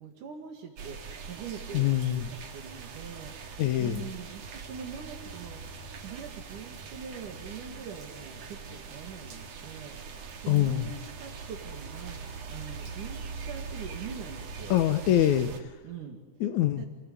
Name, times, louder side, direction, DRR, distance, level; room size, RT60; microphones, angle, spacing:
voice 1, 0.0-3.3 3.8-12.2 12.5-14.8 15.8-16.2 16.8-16.9, right 7 dB, 85° right, 4 dB, 3.7 m, -43 dB
sound 1, 0.8-15.6, right 5 dB, 60° right, 3.1 m, -42 dB
voice 2, 1.7-2.3 3.6-4.1 10.5-10.9 14.7-15.7 16.4-16.8, left 12 dB, 75° left, 9 dB, 2.3 m, -25 dB
29.0 x 20.5 x 9.6 m, 1.4 s
omnidirectional pair, 3.5 m